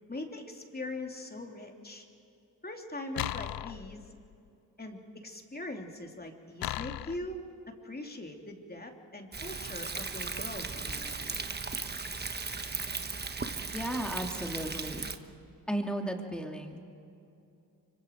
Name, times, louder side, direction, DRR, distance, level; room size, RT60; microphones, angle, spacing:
voice 1, 0.1-2.1 2.6-4.0 4.8-7.4 7.7-11.4, left 1 dB, 20° left, 2 dB, 3.1 m, -41 dB
sound 1, 3.2-4.4 6.6-7.4, left 14 dB, 60° left, 0.6 m, -37 dB
Thunder, 9.3-15.2, right 4 dB, 25° right, 1.3 m, -37 dB
voice 2, 13.7-15.1 15.7-16.8, right 1 dB, ahead, 2 dB, 2.9 m, -34 dB
25.0 x 24.0 x 4.7 m, 2.7 s
supercardioid pair, 55°, 42 cm